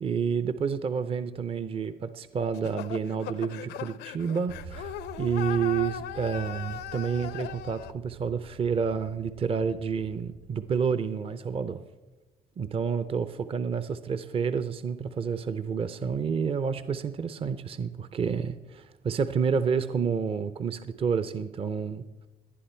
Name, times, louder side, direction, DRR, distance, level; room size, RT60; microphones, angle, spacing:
voice 1, 0.0-11.8 12.6-22.0, right 6 dB, 35° right, 13 dB, 0.6 m, -29 dB
sound 1, 2.5-7.9, left 11 dB, 75° left, 0.6 m, -38 dB
sound 2, 4.5-10.7, right 4 dB, 60° right, 4.9 m, -47 dB
18.5 x 11.0 x 4.4 m, 1.2 s
cardioid pair, 110°, 17 cm